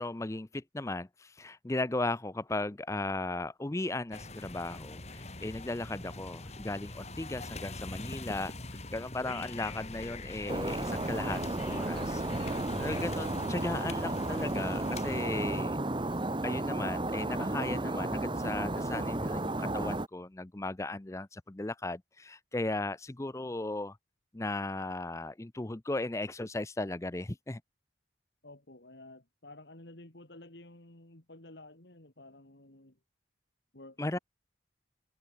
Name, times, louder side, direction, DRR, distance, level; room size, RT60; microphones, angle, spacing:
voice 1, 0.0-15.8 16.4-24.0 24.3-27.6 34.0-34.2, left 2 dB, 15° left, 0.5 m, -36 dB
sound 1, 4.1-15.6, left 2 dB, 35° left, 3.3 m, -42 dB
sound 2, 10.5-20.1, right 2 dB, 25° right, 1.1 m, -33 dB
voice 2, 28.4-33.0 33.7-34.2, left 2 dB, 70° left, 3.1 m, -52 dB
head